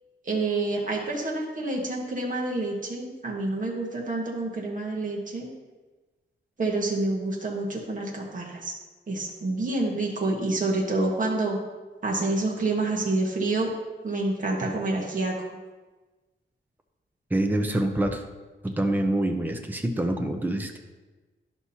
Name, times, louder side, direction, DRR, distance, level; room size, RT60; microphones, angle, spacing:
voice 1, 0.2-5.5 6.6-8.7 9.1-11.6 12.0-13.7 14.0-15.3, right 2 dB, 40° right, -1 dB, 1.3 m, -28 dB
voice 2, 17.3-18.2 18.6-20.8, right 1 dB, 10° right, 4 dB, 0.6 m, -26 dB
11.5 x 6.0 x 2.8 m, 1.2 s
wide cardioid pair, 135°, 20 cm